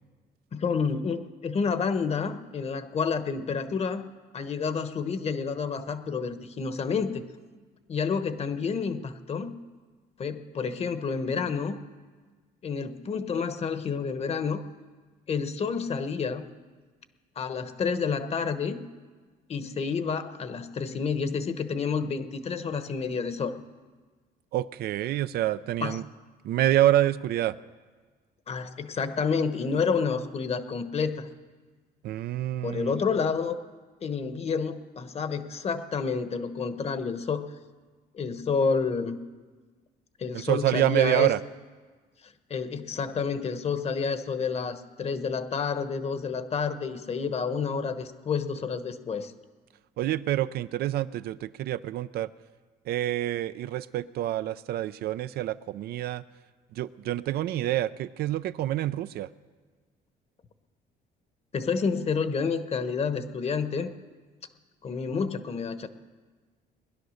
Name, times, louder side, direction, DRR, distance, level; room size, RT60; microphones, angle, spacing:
voice 1, 0.5-4.0 4.3-7.2 7.9-9.5 10.2-11.8 12.6-14.6 15.3-16.4 17.4-18.8 19.5-23.6 25.8-26.0 28.5-31.3 32.6-33.6 34.0-37.5 38.1-39.2 40.2-41.3 42.5-49.3 61.5-63.9 64.8-65.9, left 5 dB, 40° left, 10 dB, 1.1 m, -29 dB
voice 2, 24.5-26.0 26.4-27.6 32.0-33.0 40.3-41.4 50.0-52.3 52.9-56.2 56.7-59.3, right 13 dB, 70° right, 14 dB, 0.5 m, -27 dB
20.0 x 10.5 x 6.5 m, 1.4 s
cardioid pair, 110°, 17 cm